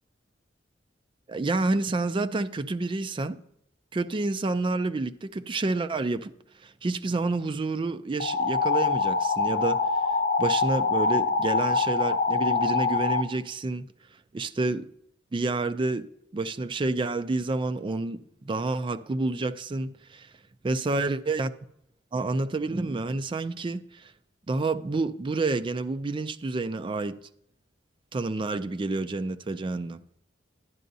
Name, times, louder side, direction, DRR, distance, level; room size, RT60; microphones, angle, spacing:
voice 1, 1.3-3.4 3.9-6.3 6.6-9.9 10.4-13.9 14.3-14.9 15.3-20.3 20.6-21.5 22.1-24.1 24.5-27.2 28.1-30.0, right 3 dB, 25° right, 0.4 m, -29 dB
sound 1, 8.2-13.2, left 4 dB, 50° left, 0.5 m, -24 dB
11.0 x 10.0 x 2.7 m
head